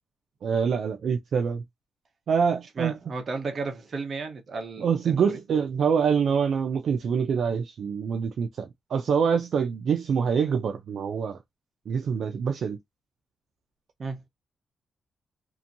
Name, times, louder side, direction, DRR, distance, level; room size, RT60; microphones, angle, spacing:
voice 1, 0.4-1.6 2.3-3.0 4.8-11.4 11.9-12.8, right 6 dB, 60° right, 0.4 m, -25 dB
voice 2, 2.8-5.2 14.0-14.3, right 4 dB, 40° right, 0.9 m, -34 dB
2.9 x 2.6 x 2.5 m
wide cardioid pair, 140°, 0 cm